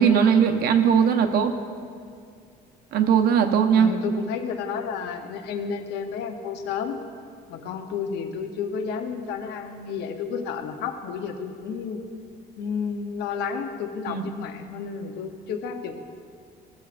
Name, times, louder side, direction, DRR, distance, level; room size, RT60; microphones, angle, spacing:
voice 1, 0.0-1.5 2.9-3.9 14.1-14.2, right 7 dB, 65° right, 6 dB, 0.8 m, -19 dB
voice 2, 3.8-7.0 7.5-12.1 12.6-16.0, left 6 dB, 85° left, 6 dB, 0.8 m, -31 dB
16.5 x 7.2 x 2.5 m, 2.2 s
cardioid pair, 110°, 17 cm